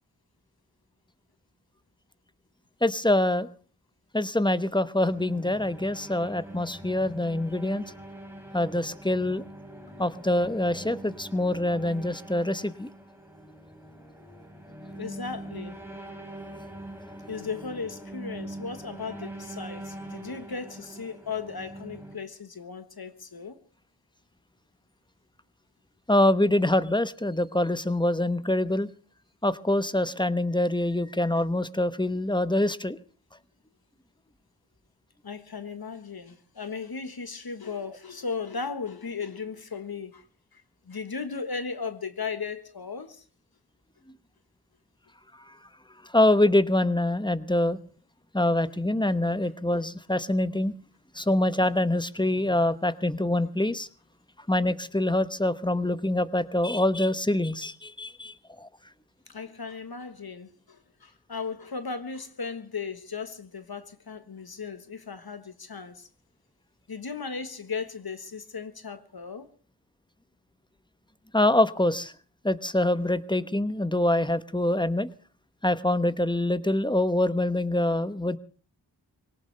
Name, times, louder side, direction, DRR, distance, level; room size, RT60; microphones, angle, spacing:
voice 1, 2.8-3.5 4.1-7.8 8.5-9.4 10.0-12.9 26.1-28.9 29.4-33.0 46.1-47.8 48.3-50.7 51.1-53.9 54.5-58.7 71.3-72.1 72.4-75.1 75.6-78.4, left 1 dB, 10° left, 1.0 m, -25 dB
sound 1, 5.0-22.2, right 1 dB, 5° right, 3.6 m, -43 dB
voice 2, 15.0-15.8 17.3-23.6 35.2-40.2 40.5-43.2 59.3-66.1 66.9-69.5, left 5 dB, 60° left, 1.4 m, -36 dB
22.5 x 18.5 x 3.4 m
cardioid pair, 40°, 42 cm